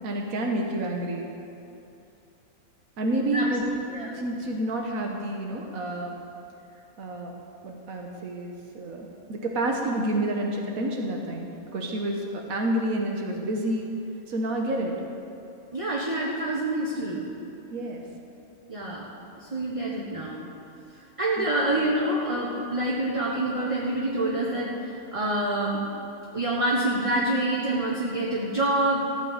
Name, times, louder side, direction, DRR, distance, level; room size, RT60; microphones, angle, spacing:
voice 1, 0.0-1.3 3.0-6.2 7.0-7.3 7.6-13.9 14.3-14.9 17.7-18.0 21.4-21.5, right 1 dB, 80° right, 1 dB, 1.6 m, -29 dB
voice 2, 15.7-17.3 18.7-19.1 19.3-20.4 21.2-25.8 26.3-29.1, right 1 dB, 25° right, -4 dB, 1.3 m, -27 dB
16.0 x 6.0 x 8.8 m, 2.8 s
omnidirectional pair, 1.5 m